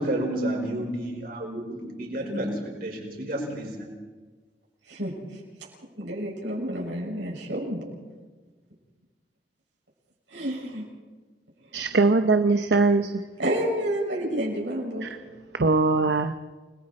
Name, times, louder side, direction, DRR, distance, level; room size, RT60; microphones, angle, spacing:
voice 1, 0.0-2.5 2.8-4.0, right 1 dB, 55° right, 0 dB, 5.4 m, -30 dB
voice 2, 4.9-5.4 6.0-7.9 10.3-10.8 13.4-15.1, right 1 dB, 85° right, -2 dB, 6.6 m, -29 dB
voice 3, 11.7-13.2 15.0-15.2 15.5-16.3, right 3 dB, 70° right, 8 dB, 0.8 m, -21 dB
29.5 x 20.5 x 4.4 m, 1.4 s
head